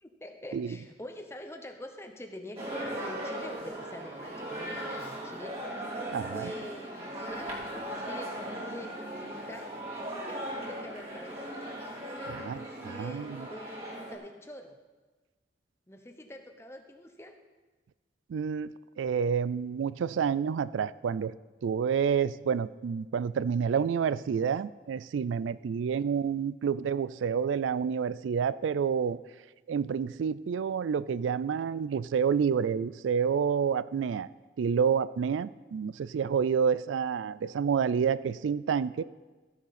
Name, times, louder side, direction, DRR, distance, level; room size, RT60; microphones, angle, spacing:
voice 1, 0.0-5.7 6.3-9.7 10.1-11.4 12.4-14.8 15.9-17.4, left 1 dB, 15° left, 5 dB, 0.9 m, -45 dB
sound 1, 2.6-14.2, right 1 dB, 35° right, 2.8 m, -38 dB
voice 2, 6.1-6.5 12.3-13.5 18.3-18.7 19.0-21.3 21.6-29.2 29.7-34.3 34.6-39.0, right 7 dB, 85° right, 18 dB, 0.3 m, -29 dB
14.5 x 10.0 x 4.2 m, 1.2 s
head